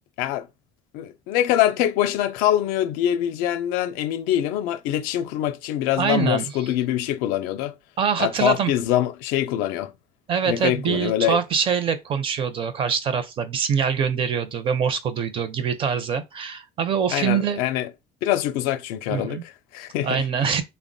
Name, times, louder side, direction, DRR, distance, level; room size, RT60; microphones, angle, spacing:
voice 1, 0.9-7.7 8.2-9.9 10.5-11.4 17.1-17.9 18.2-20.3, left 12 dB, 75° left, 0.4 m, -24 dB
voice 2, 6.0-6.4 8.0-8.7 10.3-17.6 19.1-19.4 20.0-20.6, right 7 dB, 35° right, 0.5 m, -24 dB
3.4 x 2.1 x 2.6 m
cardioid pair, 125°, 15 cm